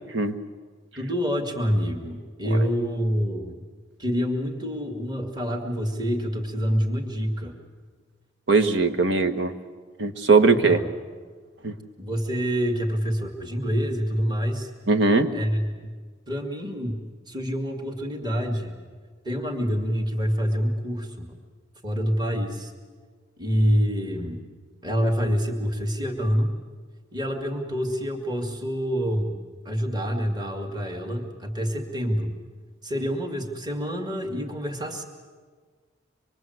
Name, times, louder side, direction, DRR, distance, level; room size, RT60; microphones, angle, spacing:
voice 1, 1.0-3.6 4.0-7.5 10.4-10.8 12.0-14.7 15.3-15.9 16.3-18.8 19.2-21.3 21.8-22.7 23.4-24.4 24.8-26.5 27.1-29.4 29.7-32.3 32.8-35.1, equal, 20° right, 3 dB, 2.1 m, -27 dB
voice 2, 8.5-9.5 10.0-10.8 11.6-11.7 14.9-15.3, right 3 dB, 65° right, 8 dB, 1.4 m, -20 dB
25.0 x 22.0 x 7.9 m, 1.5 s
head